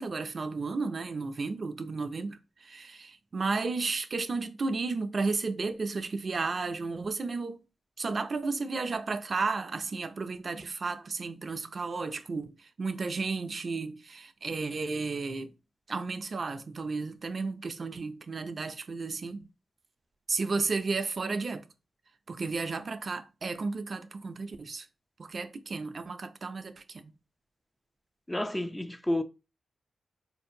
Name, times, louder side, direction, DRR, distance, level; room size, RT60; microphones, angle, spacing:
voice 1, 0.0-7.6 8.0-15.5 15.9-19.4 20.3-21.7 22.3-24.9 25.2-27.1, right 4 dB, 55° right, 0.4 m, -33 dB
voice 2, 28.3-29.2, left 1 dB, 15° left, 0.4 m, -30 dB
4.2 x 2.6 x 2.6 m
supercardioid pair, 45°, 0 cm